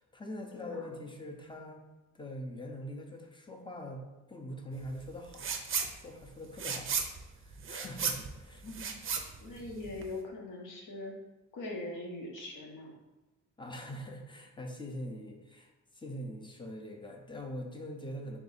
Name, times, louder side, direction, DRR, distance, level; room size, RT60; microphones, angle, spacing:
voice 1, 0.0-1.8 2.1-7.0 7.3-8.6 13.6-18.4, equal, 15° left, 2 dB, 0.5 m, -43 dB
voice 2, 0.5-0.9 8.6-11.1 11.5-12.9, left 2 dB, 80° left, -1 dB, 0.9 m, -42 dB
sound 1, 5.3-5.9 6.2-10.2, right 6 dB, 40° right, 0.5 m, -35 dB
3.5 x 2.6 x 4.0 m, 1.1 s
cardioid pair, 105°, 31 cm